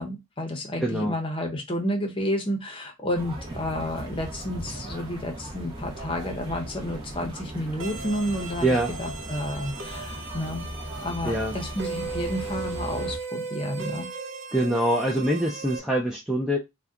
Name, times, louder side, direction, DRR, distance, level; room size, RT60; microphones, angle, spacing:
voice 1, 0.0-10.7 11.0-14.1, equal, 25° left, 0.7 m, -31 dB
voice 2, 0.8-1.1 8.6-8.9 11.2-11.6 14.5-16.6, right 1 dB, ahead, 0.3 m, -24 dB
sound 1, 3.1-13.2, right 1 dB, 25° right, 0.8 m, -38 dB
sound 2, 7.8-15.8, right 4 dB, 55° right, 0.6 m, -37 dB
2.7 x 2.2 x 3.5 m
head